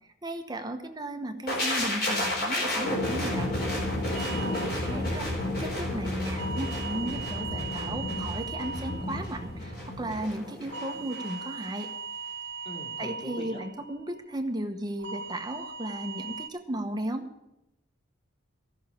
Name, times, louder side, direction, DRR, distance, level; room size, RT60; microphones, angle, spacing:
voice 1, 0.2-3.5 4.6-5.3 5.6-11.9 13.0-17.3, right 1 dB, 20° right, 6 dB, 0.9 m, -35 dB
sound 1, 1.5-11.3 11.6-11.8, left 1 dB, 50° left, 4.3 m, -31 dB
sound 2, 4.1-5.9 6.3-10.2 10.7-14.6 15.0-16.5, right 5 dB, 60° right, 0.7 m, -40 dB
voice 2, 4.3-5.1 12.6-13.6, left 1 dB, 25° left, -2 dB, 2.8 m, -42 dB
15.0 x 6.3 x 8.4 m, 0.89 s
head